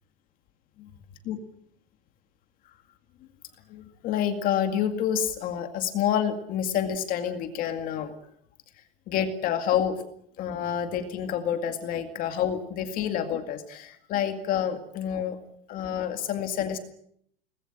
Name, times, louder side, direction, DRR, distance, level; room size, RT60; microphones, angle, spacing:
voice 1, 3.7-8.2 9.1-10.0 10.4-15.4 15.7-16.8, left 9 dB, 30° left, 7 dB, 2.1 m, -28 dB
23.5 x 20.0 x 8.8 m, 0.69 s
supercardioid pair, 175°, 29 cm